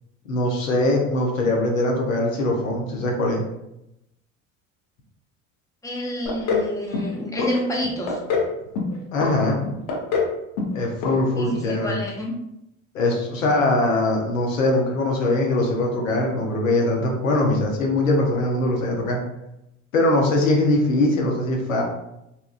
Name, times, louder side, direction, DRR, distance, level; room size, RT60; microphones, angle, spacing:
voice 1, 0.3-3.4 9.1-9.6 10.7-12.0 12.9-19.2 19.9-21.8, left 2 dB, 90° left, 0 dB, 0.7 m, -21 dB
voice 2, 5.8-8.2 11.4-12.3, left 1 dB, 10° left, -2 dB, 0.7 m, -28 dB
sound 1, 6.3-6.7 6.9-7.5 7.8-8.5 8.8-9.3 9.7-10.3 10.6-10.8 11.0-11.1 11.5-11.6, left 5 dB, 55° left, 0.8 m, -24 dB
2.8 x 2.3 x 2.4 m, 0.85 s
hypercardioid pair, 70°, 39 cm